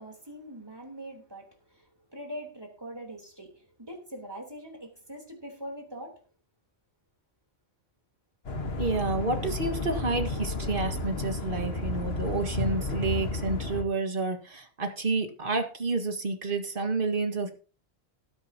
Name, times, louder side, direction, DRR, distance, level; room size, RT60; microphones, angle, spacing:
voice 1, 0.0-6.1, equal, 20° right, 3.4 m, -43 dB
sound 1, 8.4-13.8, left 2 dB, 70° left, 1.6 m, -32 dB
voice 2, 8.8-17.5, right 3 dB, 55° right, 1.9 m, -29 dB
19.0 x 8.0 x 2.8 m
omnidirectional pair, 1.1 m